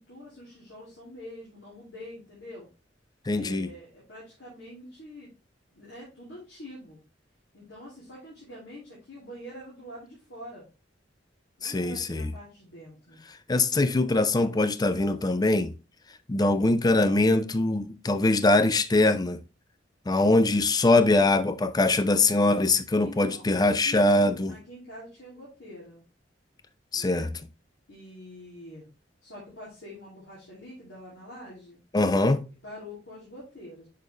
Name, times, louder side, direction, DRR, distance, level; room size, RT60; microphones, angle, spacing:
voice 1, 0.0-2.7 3.3-5.3 5.7-7.0 7.5-10.7 11.6-13.2 23.0-26.0 26.9-27.3 27.9-28.8 29.2-31.8 32.6-33.9, left 1 dB, 80° left, 2.7 m, -45 dB
voice 2, 3.3-3.7 11.6-12.3 13.5-15.7 16.3-19.4 20.1-24.5 26.9-27.3 31.9-32.4, left 2 dB, 20° left, 0.4 m, -22 dB
6.6 x 5.2 x 3.2 m
head